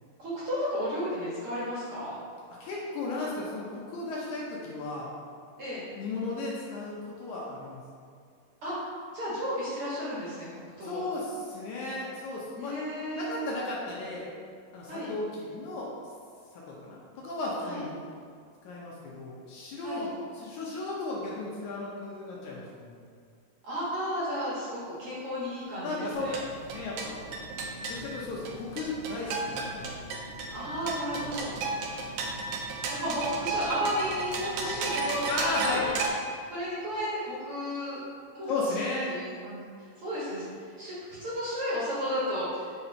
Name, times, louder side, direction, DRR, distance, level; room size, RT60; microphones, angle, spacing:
voice 1, 0.2-2.1 5.6-5.8 8.6-8.8 9.1-10.5 10.8-11.1 12.6-13.4 14.9-15.1 17.6-17.8 19.8-20.1 23.6-26.3 30.5-31.9 32.9-36.0 36.5-38.0 38.3-39.6 40.0-40.4 40.8-42.7, equal, 55° right, -8 dB, 1.7 m, -33 dB
voice 2, 2.6-5.1 6.0-7.8 10.8-12.8 13.1-14.3 14.7-15.9 16.5-17.9 18.6-23.0 25.8-26.3 26.7-27.2 27.7-30.0 31.1-31.4 32.2-32.4 35.3-35.9 38.5-39.2, left 2 dB, 70° left, -4 dB, 2.0 m, -35 dB
sound 1, 26.1-36.1, right 3 dB, 75° right, 1.9 m, -34 dB
6.6 x 4.2 x 4.3 m, 2.2 s
omnidirectional pair, 4.0 m